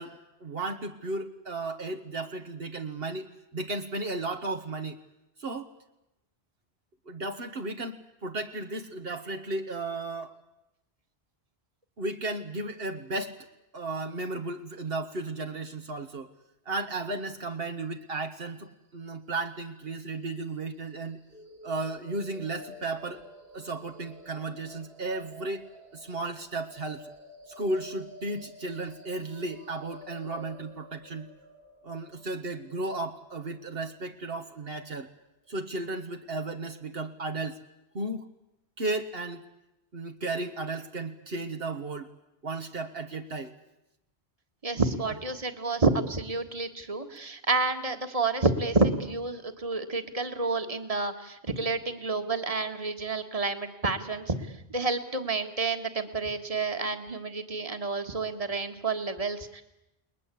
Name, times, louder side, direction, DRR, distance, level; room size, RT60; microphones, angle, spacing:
voice 1, 0.0-5.0 5.4-5.7 7.0-10.4 12.0-13.4 13.7-16.3 16.6-21.2 21.6-23.2 23.5-27.1 27.5-31.3 31.8-35.1 35.5-37.6 37.9-38.3 38.8-39.4 39.9-42.1 42.4-43.5 45.0-45.2, right 2 dB, 65° right, 5 dB, 1.6 m, -34 dB
sound 1, 21.3-35.2, right 1 dB, 90° right, 6.1 m, -50 dB
voice 2, 44.6-54.4 54.7-59.6, right 3 dB, 35° right, 7 dB, 1.9 m, -29 dB
29.5 x 21.0 x 8.5 m, 0.91 s
omnidirectional pair, 1.1 m